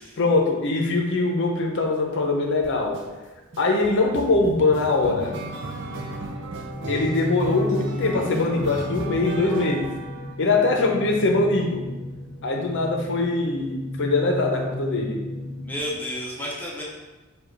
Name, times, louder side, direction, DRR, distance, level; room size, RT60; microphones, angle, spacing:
voice 1, 0.2-3.0 3.6-5.3 6.9-9.9 10.4-11.9 12.4-15.2, left 3 dB, 60° left, 2 dB, 0.7 m, -22 dB
sound 1, 2.6-3.0 3.5-10.7, right 2 dB, 60° right, 0.5 m, -35 dB
sound 2, 3.5-15.8, left 1 dB, 25° left, 1.1 m, -35 dB
voice 2, 15.6-16.8, equal, 10° left, -4 dB, 0.6 m, -31 dB
4.8 x 2.3 x 4.5 m, 1.2 s
head